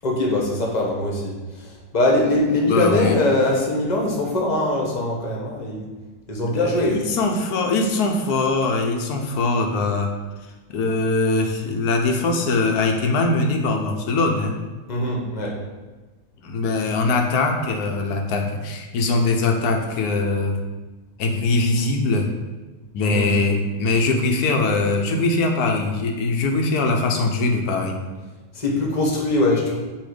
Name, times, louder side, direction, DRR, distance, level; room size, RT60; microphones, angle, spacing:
voice 1, 0.0-5.8 6.3-7.0 14.9-15.6 23.0-23.3 28.5-29.8, left 2 dB, 25° left, -1 dB, 1.0 m, -22 dB
voice 2, 2.7-3.2 6.5-10.1 10.7-14.5 16.4-20.6 21.2-22.3 22.9-28.0, left 3 dB, 65° left, 3 dB, 1.2 m, -22 dB
8.4 x 3.1 x 5.0 m, 1.2 s
omnidirectional pair, 2.0 m